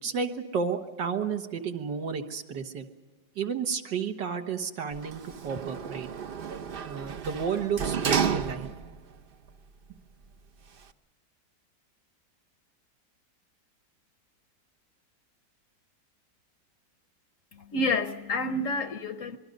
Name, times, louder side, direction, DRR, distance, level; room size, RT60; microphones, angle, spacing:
voice 1, 0.0-2.9 3.4-6.1 6.8-8.7, right 6 dB, 80° right, 2.1 m, -32 dB
Sliding door, 4.9-9.0 9.5-9.6, right 7 dB, 55° right, 0.6 m, -31 dB
voice 2, 17.5-19.4, left 2 dB, 55° left, 1.0 m, -29 dB
27.0 x 21.5 x 5.3 m
omnidirectional pair, 1.9 m